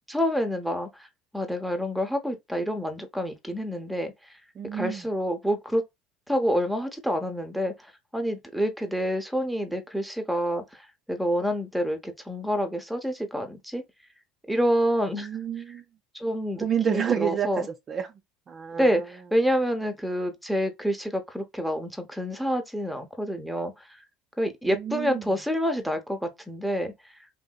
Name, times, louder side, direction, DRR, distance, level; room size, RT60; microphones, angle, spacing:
voice 1, 0.1-1.1 1.3-4.1 4.7-5.8 6.3-13.8 14.5-15.3 16.1-17.7 18.8-23.7 24.4-26.9, equal, ahead, 0.8 m, -28 dB
voice 2, 4.6-5.1 15.1-15.8 16.6-18.1 18.5-19.1 24.6-25.3, right 8 dB, 40° right, 0.5 m, -29 dB
3.0 x 2.7 x 2.2 m
hypercardioid pair, 80°, 0 cm